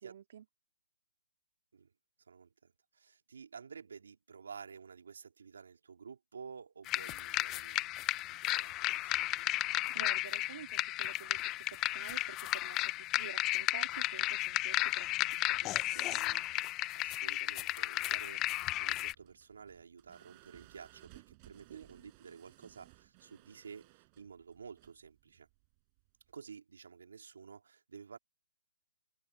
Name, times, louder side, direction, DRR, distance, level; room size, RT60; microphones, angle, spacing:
voice 1, 0.0-0.4 9.9-12.8 13.1-15.3 15.6-16.4 21.7-21.9, right 9 dB, 50° right, 2.3 m, -50 dB
voice 2, 2.3-8.0 8.3-9.6 16.9-18.5 18.8-25.5 26.3-28.2, right 6 dB, 75° right, 3.7 m, -52 dB
sound 1, 6.9-19.1, left 17 dB, 20° left, 0.5 m, -34 dB
sound 2, 18.5-26.3, right 31 dB, 25° right, 6.4 m, -62 dB
hypercardioid pair, 155°, 0 cm